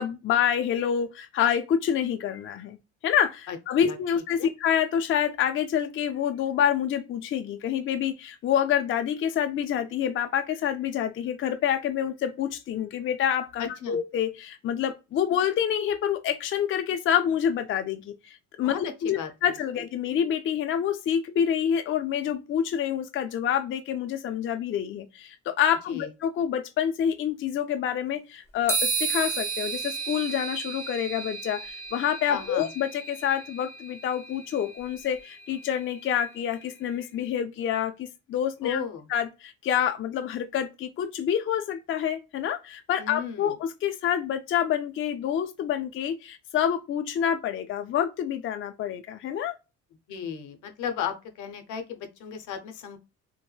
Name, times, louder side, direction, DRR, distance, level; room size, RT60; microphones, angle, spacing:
voice 1, 0.0-2.8 3.0-38.8 39.1-49.6, left 9 dB, 45° left, 0.4 m, -27 dB
voice 2, 3.8-4.5 13.6-14.0 18.6-19.3 25.9-26.1 32.3-32.7 38.6-39.1 43.0-43.6 50.1-53.0, left 7 dB, 80° left, 0.7 m, -34 dB
sound 1, 28.7-36.3, right 4 dB, 10° left, 0.8 m, -34 dB
3.0 x 2.1 x 2.2 m
cardioid pair, 90°, 30 cm